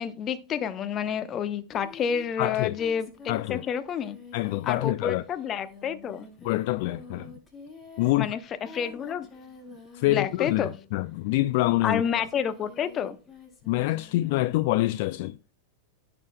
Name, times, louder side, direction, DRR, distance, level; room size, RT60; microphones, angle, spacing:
voice 1, 0.0-4.2 4.6-6.3 8.2-8.4 8.7-9.3 10.1-10.7 11.8-13.2, left 7 dB, 30° left, 0.9 m, -29 dB
Singing, 1.7-11.1 11.5-14.5, left 3 dB, 10° left, 5.1 m, -48 dB
voice 2, 2.4-2.7 3.3-3.6 4.3-5.3 6.4-7.4 8.0-8.3 9.9-12.2 13.7-15.4, left 17 dB, 50° left, 0.3 m, -26 dB
15.5 x 7.0 x 2.2 m
figure-of-eight pair, 90°, 0 cm